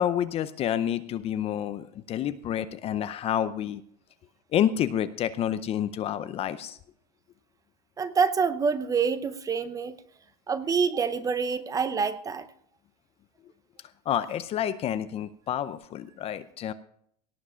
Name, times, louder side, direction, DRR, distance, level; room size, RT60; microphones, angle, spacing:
voice 1, 0.0-3.8 4.5-6.8 14.1-16.7, left 10 dB, 30° left, 13 dB, 0.5 m, -29 dB
voice 2, 8.0-10.0 10.5-12.5, right 5 dB, 15° right, 13 dB, 0.7 m, -26 dB
18.0 x 7.4 x 5.6 m, 0.65 s
supercardioid pair, 145°, 21 cm